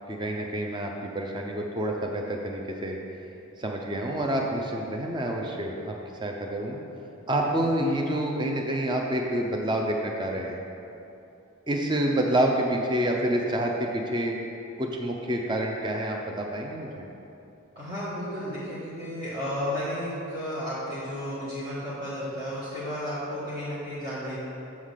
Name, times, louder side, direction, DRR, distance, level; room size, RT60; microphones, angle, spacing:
voice 1, 0.1-3.0 3.6-6.0 6.2-6.8 7.3-10.6 11.7-14.4 14.8-17.0, right 1 dB, 20° right, 1 dB, 0.5 m, -28 dB
voice 2, 17.7-24.4, equal, 45° right, -13 dB, 1.7 m, -33 dB
7.3 x 3.8 x 6.4 m, 2.8 s
head